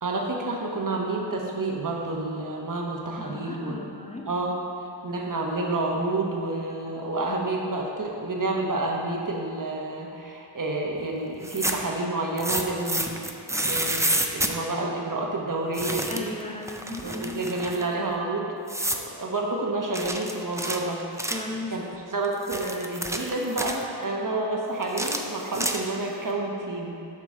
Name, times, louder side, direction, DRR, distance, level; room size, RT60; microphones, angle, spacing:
voice 1, 0.0-3.8 4.3-13.2 13.7-16.3 17.0-18.6 19.0-21.0 21.7-21.8 22.1-26.9, right 2 dB, 45° right, -1 dB, 1.0 m, -29 dB
voice 2, 3.2-4.3 16.1-17.4 21.3-21.7, left 2 dB, 15° left, 1 dB, 0.7 m, -36 dB
sound 1, 11.3-11.9 12.4-14.5 15.7-16.3 16.6-17.8 18.7-19.1 19.9-21.5 22.2-23.8 24.8-26.1, right 1 dB, 5° right, 0.4 m, -29 dB
7.6 x 5.8 x 3.7 m, 2.6 s
wide cardioid pair, 75°, 43 cm